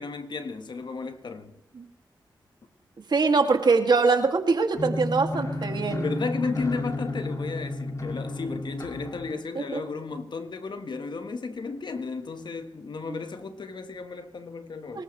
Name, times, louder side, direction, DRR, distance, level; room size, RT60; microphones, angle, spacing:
voice 1, 0.0-1.5 6.0-15.0, left 4 dB, 60° left, 1.5 m, -34 dB
voice 2, 3.1-6.1 9.5-9.8 13.1-13.2 14.9-15.0, right 4 dB, 60° right, 2.4 m, -23 dB
sound 1, 4.7-9.3, left 2 dB, 40° left, 2.7 m, -32 dB
25.0 x 13.5 x 3.3 m
supercardioid pair, 40°, 9 cm